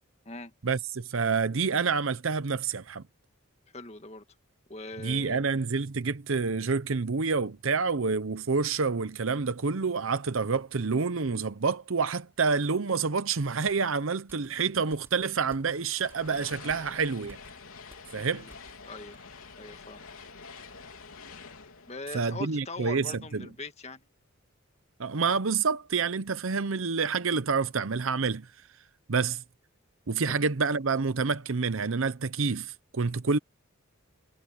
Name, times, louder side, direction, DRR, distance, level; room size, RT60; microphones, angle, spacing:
voice 1, 0.6-3.0 5.0-17.4 18.1-18.5 22.1-23.5 25.0-28.5 29.1-29.4 30.1-33.4, right 5 dB, 70° right, 0.7 m, -28 dB
voice 2, 3.7-4.2 4.7-5.4 18.3-18.5 18.8-19.2 19.6-20.0 21.8-24.0 30.3-30.4, left 2 dB, 30° left, 1.7 m, -41 dB
sound 1, 13.7-18.9 19.1-19.3, right 1 dB, 10° right, 5.0 m, -59 dB
sound 2, 15.7-23.1, left 5 dB, 80° left, 3.6 m, -48 dB
head